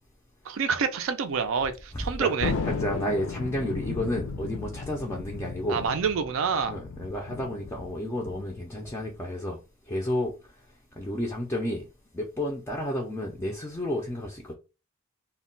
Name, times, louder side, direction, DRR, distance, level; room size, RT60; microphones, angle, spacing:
voice 1, 0.5-2.5 5.7-6.7, right 6 dB, 70° right, 0.4 m, -27 dB
voice 2, 1.9-2.3 2.6-5.8 6.7-9.6 9.9-10.3 11.0-11.8 12.1-14.5, left 1 dB, 15° left, 0.3 m, -31 dB
Thunder, 2.4-9.2, left 4 dB, 75° left, 0.4 m, -35 dB
2.2 x 2.1 x 3.7 m
head